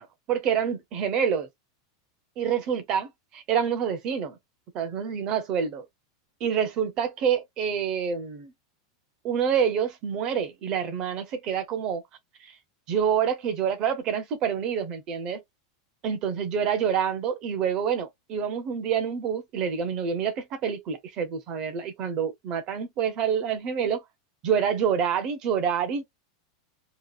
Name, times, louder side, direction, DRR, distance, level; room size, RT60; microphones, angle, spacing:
voice 1, 0.0-1.5 2.4-3.1 3.3-4.4 4.7-5.8 6.4-8.5 9.2-12.0 12.4-12.5 12.9-15.4 16.0-24.0 24.4-26.0, right 7 dB, 25° right, 0.5 m, -27 dB
2.8 x 2.3 x 2.3 m
supercardioid pair, 180°, 2 cm